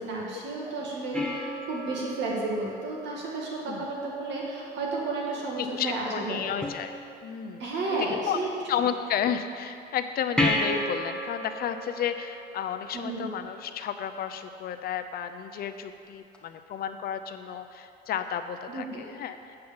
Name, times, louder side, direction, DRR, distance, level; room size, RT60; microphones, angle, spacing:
voice 1, 0.0-6.5 7.6-8.5 12.9-13.3 18.7-18.9, right 2 dB, 75° right, -3 dB, 2.1 m, -32 dB
sound 1, 1.1-3.8 6.6-7.6 10.4-13.3 16.3-16.4, left 1 dB, 5° left, 1.0 m, -32 dB
voice 2, 5.6-7.7 8.0-19.6, left 8 dB, 55° left, 8 dB, 0.6 m, -32 dB
7.8 x 5.6 x 7.0 m, 2.5 s
cardioid pair, 130°, 19 cm